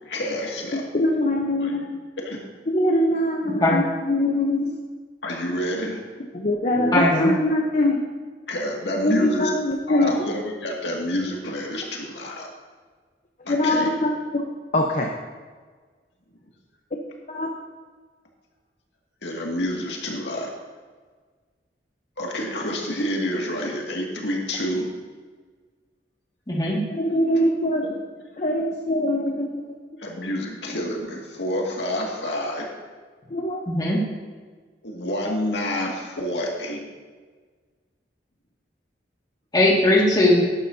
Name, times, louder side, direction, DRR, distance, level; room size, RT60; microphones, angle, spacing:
voice 1, 0.0-0.8 1.6-1.8 2.2-2.4 5.2-6.0 8.5-9.5 9.9-12.5 13.5-13.9 19.2-20.5 22.2-24.9 30.0-32.7 34.8-36.8, equal, 85° left, -1 dB, 2.1 m, -28 dB
voice 2, 0.9-2.0 2.7-4.8 6.3-8.0 9.0-10.1 13.5-14.4 14.7-15.1 17.3-17.5 26.9-28.0 28.4-29.6 33.3-33.6, left 1 dB, 45° left, 1 dB, 0.8 m, -23 dB
voice 3, 3.5-3.8 6.9-7.3 26.5-26.8 33.7-34.0 39.5-40.4, left 1 dB, 25° left, -3 dB, 2.0 m, -19 dB
12.0 x 11.5 x 2.7 m, 1.5 s
head